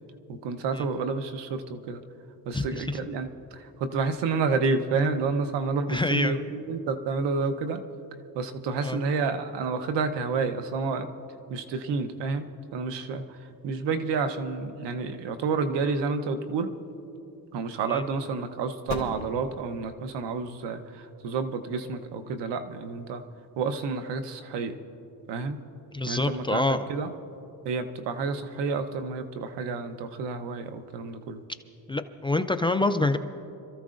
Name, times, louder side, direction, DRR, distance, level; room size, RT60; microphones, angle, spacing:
voice 1, 0.3-2.0 2.5-7.8 8.3-11.1 11.5-16.7 17.5-23.2 23.6-24.8 25.3-25.6 26.1-27.1 27.6-31.4, right 4 dB, 85° right, 8 dB, 1.0 m, -30 dB
voice 2, 2.5-2.8 5.9-6.3 8.8-9.0 17.9-18.0 25.9-26.8 31.9-33.2, left 2 dB, 15° left, 8 dB, 0.3 m, -26 dB
sound 1, 16.7-23.6, left 4 dB, 45° left, 2.5 m, -45 dB
27.0 x 14.0 x 2.6 m, 2.8 s
cardioid pair, 125°, 41 cm